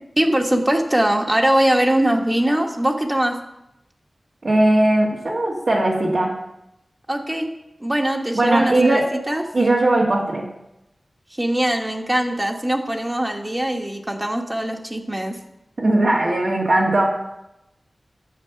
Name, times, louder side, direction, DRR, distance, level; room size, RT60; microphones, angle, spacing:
voice 1, 0.2-3.4 7.1-7.5 7.8-9.4 11.4-15.3, right 1 dB, 20° right, 2 dB, 1.2 m, -21 dB
voice 2, 4.4-6.3 8.4-9.1 9.5-10.4 15.8-17.0, right 1 dB, 70° right, -4 dB, 1.8 m, -18 dB
9.7 x 7.1 x 5.8 m, 0.87 s
wide cardioid pair, 50°, 0 cm